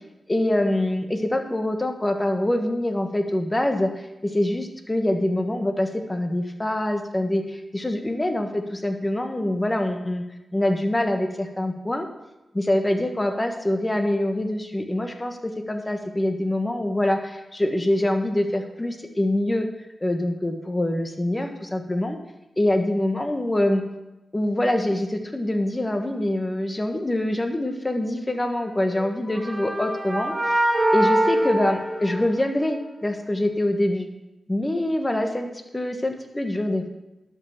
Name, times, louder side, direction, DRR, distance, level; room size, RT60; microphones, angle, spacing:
voice 1, 0.3-3.9 4.2-10.2 10.5-12.1 12.5-19.7 20.0-22.2 22.6-23.8 24.3-30.6 30.9-34.1 34.5-35.5 35.7-36.9, left 1 dB, 20° left, 5 dB, 1.4 m, -25 dB
sound 1, 28.8-32.7, right 1 dB, 20° right, 2.4 m, -24 dB
11.5 x 5.7 x 6.7 m, 0.98 s
cardioid pair, 65°, 0 cm